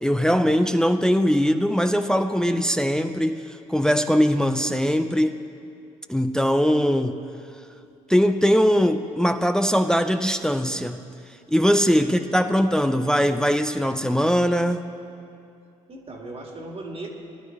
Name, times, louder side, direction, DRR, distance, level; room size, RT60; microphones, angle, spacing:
voice 1, 0.0-3.4 3.7-5.4 6.1-7.2 8.1-11.0 11.5-14.8, equal, 5° left, 8 dB, 0.5 m, -21 dB
voice 2, 11.9-12.3 15.9-17.1, right 2 dB, 35° right, 1 dB, 1.9 m, -38 dB
18.0 x 11.0 x 3.6 m, 2.5 s
hypercardioid pair, 55°, 17 cm